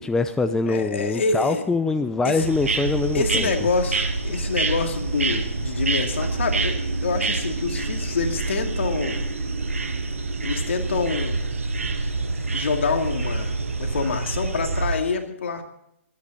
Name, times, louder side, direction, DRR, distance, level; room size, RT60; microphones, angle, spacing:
voice 1, 0.0-3.5, left 3 dB, 5° left, 9 dB, 0.6 m, -24 dB
voice 2, 0.7-1.6 2.2-2.5 3.1-9.3 10.4-11.4 12.5-15.6, left 4 dB, 60° left, 5 dB, 2.4 m, -26 dB
sound 1, 2.4-15.0, right 3 dB, 75° right, 1.8 m, -26 dB
24.0 x 9.9 x 4.1 m, 0.80 s
figure-of-eight pair, 125°, 7 cm